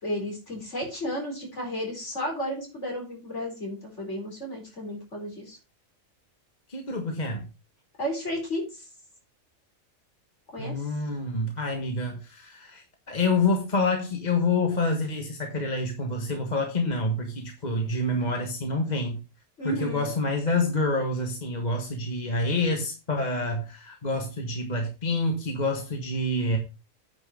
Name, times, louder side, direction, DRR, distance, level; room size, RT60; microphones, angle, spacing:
voice 1, 0.0-5.6 8.0-8.8 10.5-10.8 19.6-20.1, equal, 55° left, 4.8 m, -33 dB
voice 2, 6.7-7.5 10.6-19.2 19.6-26.6, left 2 dB, 30° left, 1.5 m, -27 dB
9.4 x 6.0 x 5.0 m
omnidirectional pair, 1.4 m